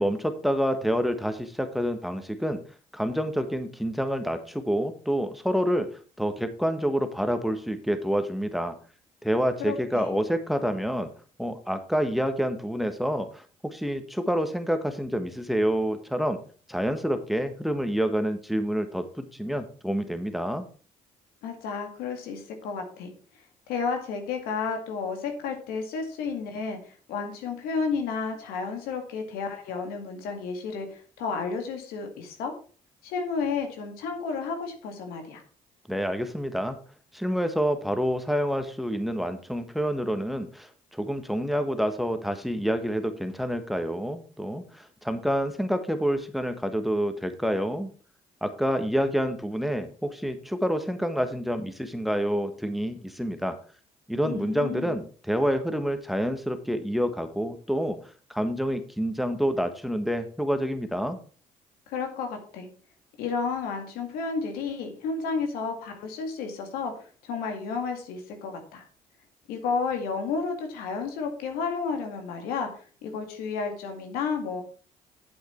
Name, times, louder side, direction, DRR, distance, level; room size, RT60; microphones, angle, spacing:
voice 1, 0.0-2.6 2.9-5.9 6.2-8.7 9.2-11.1 11.4-16.4 16.7-20.7 35.9-36.8 37.1-47.9 48.4-53.6 54.1-58.0 58.3-61.2, equal, ahead, 8 dB, 1.4 m, -28 dB
voice 2, 9.6-10.2 21.4-23.1 23.7-32.5 33.0-35.4 54.2-55.0 61.9-62.7 63.2-68.8 69.5-74.6, left 5 dB, 85° left, 5 dB, 2.1 m, -32 dB
8.7 x 7.9 x 4.5 m, 0.40 s
supercardioid pair, 65°, 15 cm